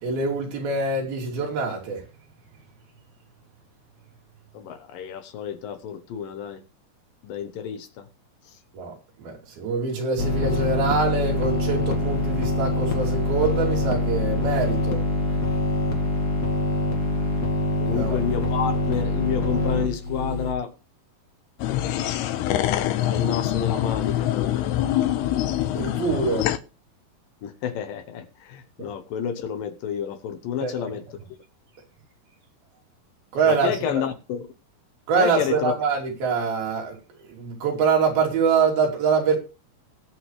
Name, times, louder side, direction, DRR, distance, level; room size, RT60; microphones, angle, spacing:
voice 1, 0.0-2.0 8.7-8.9 9.2-15.0 17.9-18.2 25.7-26.5 30.6-30.9 33.3-34.0 35.1-37.0 37.3-39.4, right 4 dB, 70° right, 4.6 m, -24 dB
voice 2, 4.5-6.6 7.2-8.1 17.8-20.7 22.5-24.7 27.4-31.0 33.4-34.5 35.2-35.7, left 8 dB, 70° left, 2.6 m, -30 dB
sound 1, 10.2-20.5, left 2 dB, 40° left, 1.6 m, -24 dB
sound 2, 21.6-26.6, left 12 dB, 90° left, 2.8 m, -24 dB
20.5 x 7.8 x 3.2 m
omnidirectional pair, 4.5 m